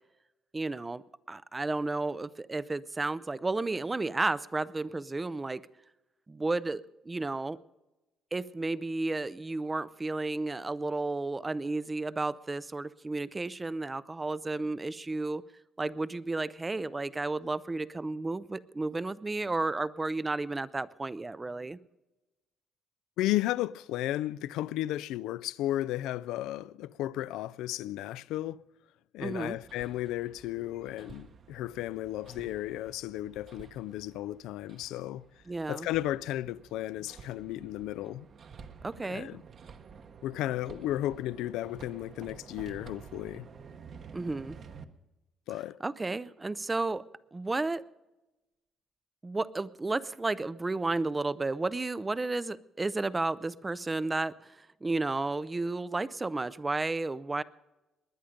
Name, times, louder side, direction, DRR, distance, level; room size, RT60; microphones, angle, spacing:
voice 1, 0.5-1.0 1.3-5.7 6.3-7.6 8.3-15.4 15.8-21.8 29.2-29.6 35.5-35.9 38.8-39.4 44.1-44.6 45.8-47.0 47.3-47.8 49.2-57.4, right 3 dB, 15° right, 0.4 m, -32 dB
voice 2, 23.2-28.6 29.1-35.2 35.7-38.2 39.0-39.4 40.2-43.5 45.5-45.8, left 14 dB, 90° left, 0.4 m, -34 dB
Hammer, 29.2-44.8, right 6 dB, 40° right, 0.9 m, -51 dB
20.0 x 10.0 x 5.1 m
cardioid pair, 140°, 0 cm